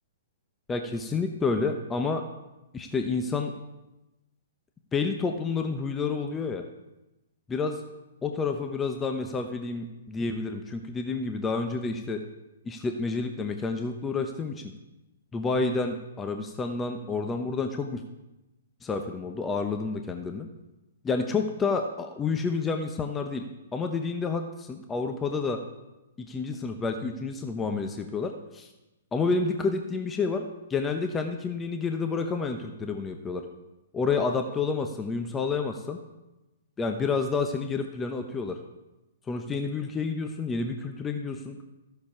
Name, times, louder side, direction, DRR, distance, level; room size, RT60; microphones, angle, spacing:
voice 1, 0.7-2.2 2.7-3.5 4.9-6.6 7.5-7.8 8.2-12.2 12.6-14.7 15.3-18.0 18.8-20.5 21.0-23.5 23.7-25.6 26.2-28.7 29.1-30.4 30.7-33.4 33.9-36.0 36.8-38.6 39.3-41.6, left 4 dB, 15° left, 5 dB, 0.8 m, -29 dB
13.5 x 6.8 x 4.8 m, 1.0 s
hypercardioid pair, 125°, 0 cm